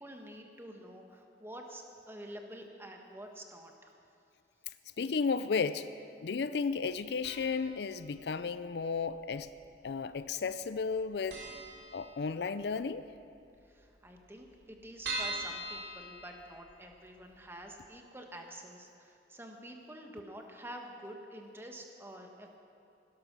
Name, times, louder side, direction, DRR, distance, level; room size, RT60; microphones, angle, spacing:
voice 1, 0.0-3.9 13.6-22.6, right 1 dB, 15° right, 2 dB, 1.4 m, -48 dB
voice 2, 5.0-5.9 6.2-9.5 9.8-11.4 11.9-13.1, left 5 dB, 65° left, 13 dB, 0.4 m, -33 dB
sound 1, 7.2-7.8 8.0-8.1 9.1-9.8 10.0-10.2 10.5-10.6 10.9-11.0 11.3-12.6 13.0-13.1 13.4-13.5 13.6-13.7 14.2-16.9 17.3-17.4 17.8-17.9, right 2 dB, 75° right, 3.4 m, -41 dB
16.5 x 12.5 x 6.1 m, 2.5 s
head